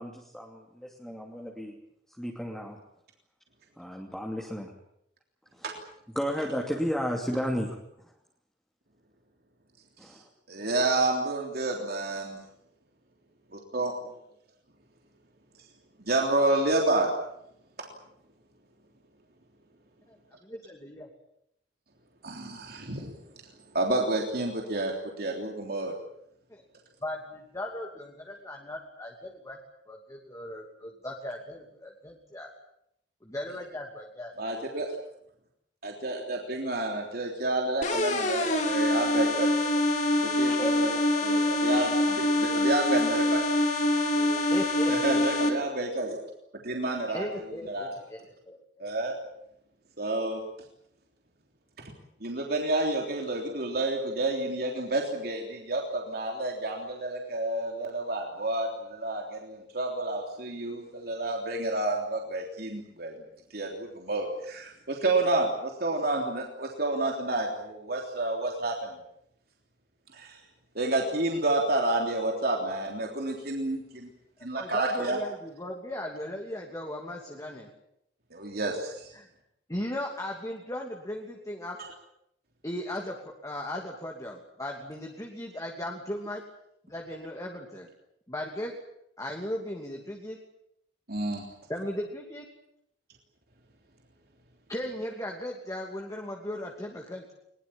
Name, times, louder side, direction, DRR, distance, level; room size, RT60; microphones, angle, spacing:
voice 1, 0.0-1.8 2.2-2.8 3.8-4.7 5.5-5.7 6.1-8.1 10.0-10.2, equal, 5° left, -1 dB, 2.7 m, -33 dB
voice 2, 10.5-12.4 13.5-13.9 16.0-17.1 22.2-23.1 23.7-25.9 34.4-34.9 35.8-39.5 40.2-40.9 41.2-43.4 44.1-44.3 44.9-46.2 46.6-47.2 47.7-47.9 48.8-49.2 50.0-50.4 52.2-63.1 63.5-69.0 70.1-70.4 70.7-74.1 74.4-75.2 78.3-79.1 91.1-91.4, right 2 dB, 60° right, 1 dB, 3.4 m, -29 dB
voice 3, 20.4-21.1 26.5-26.6 27.0-29.6 29.9-32.5 33.2-34.3 40.5-41.5 44.4-45.4 47.1-48.6 74.5-77.7 79.1-79.3 79.7-81.8 82.6-86.4 86.9-87.9 88.3-88.7 89.2-90.4 91.7-92.5 94.7-97.3, left 1 dB, 20° left, 1 dB, 2.8 m, -37 dB
sound 1, 37.8-45.5, left 1 dB, 45° left, 3.7 m, -25 dB
22.0 x 21.0 x 8.8 m, 0.76 s
head